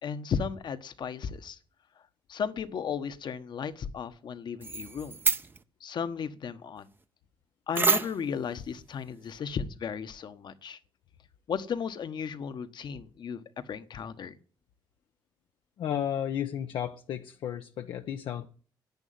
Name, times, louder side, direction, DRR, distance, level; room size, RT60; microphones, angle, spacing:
voice 1, 0.0-1.6 2.3-5.2 5.8-6.9 7.7-10.8 11.5-14.4, left 7 dB, 60° left, 11 dB, 1.2 m, -35 dB
sound 1, 4.6-5.6 7.7-8.3, right 4 dB, 25° right, 0.7 m, -27 dB
voice 2, 15.8-18.5, left 9 dB, 80° left, 5 dB, 0.8 m, -33 dB
10.5 x 8.4 x 9.3 m, 0.43 s
cardioid pair, 95°, 9 cm